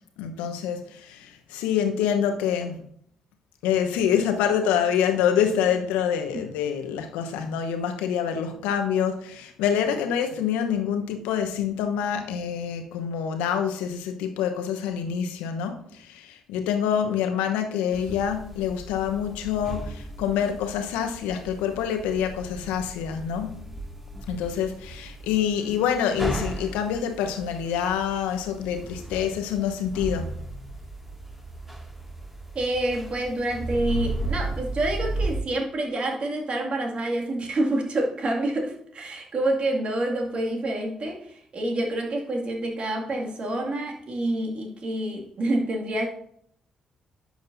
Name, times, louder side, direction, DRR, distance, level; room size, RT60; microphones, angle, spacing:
voice 1, 0.2-2.8 3.6-23.6 24.3-30.3, left 8 dB, 75° left, 1.0 m, -26 dB
sound 1, 17.9-35.4, right 1 dB, 10° right, 2.1 m, -35 dB
voice 2, 32.5-46.1, right 1 dB, 50° right, 2.2 m, -27 dB
11.0 x 7.7 x 2.7 m
hypercardioid pair, 45°, 2 cm